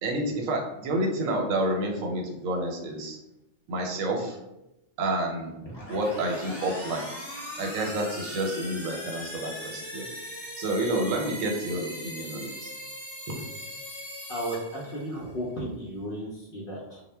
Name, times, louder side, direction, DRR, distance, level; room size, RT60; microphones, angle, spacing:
voice 1, 0.0-3.2 3.7-4.4 5.0-5.6 5.9-7.1 7.6-10.1 10.6-12.7, right 1 dB, 90° right, 2 dB, 1.0 m, -29 dB
sound 1, 5.6-15.3, equal, 25° left, 0.8 m, -39 dB
voice 2, 14.3-17.0, equal, 65° left, -4 dB, 0.6 m, -34 dB
2.1 x 2.1 x 3.2 m, 0.90 s
omnidirectional pair, 1.3 m